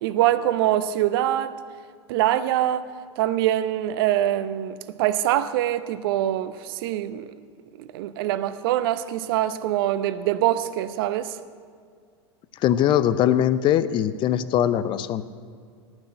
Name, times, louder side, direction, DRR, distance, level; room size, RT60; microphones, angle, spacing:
voice 1, 0.0-1.6 2.1-2.9 3.2-7.3 7.8-11.4, right 12 dB, 55° right, 0.7 m, -24 dB
voice 2, 12.6-15.2, left 11 dB, 35° left, 0.6 m, -21 dB
18.5 x 6.2 x 8.8 m
figure-of-eight pair, 90°, 14 cm